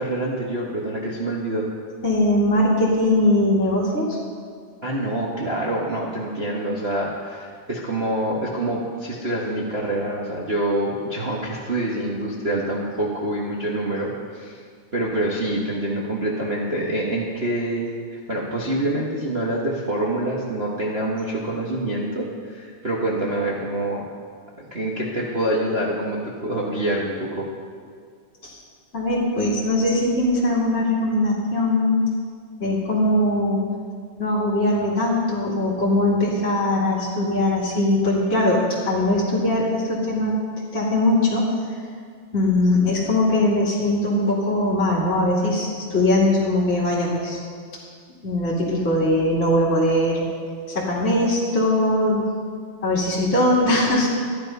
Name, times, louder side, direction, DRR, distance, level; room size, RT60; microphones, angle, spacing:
voice 1, 0.0-1.7 4.8-14.6 14.9-17.8 18.1-24.0 24.6-27.5, right 1 dB, 40° right, -4 dB, 0.8 m, -26 dB
voice 2, 2.0-4.2 28.4-28.5 28.9-32.0 32.6-33.7 34.2-40.3 40.7-41.5 42.3-47.4 48.2-50.2 50.7-52.2 52.8-54.1, left 1 dB, 25° left, -7 dB, 2.1 m, -21 dB
14.0 x 10.0 x 5.4 m, 2.1 s
omnidirectional pair, 3.4 m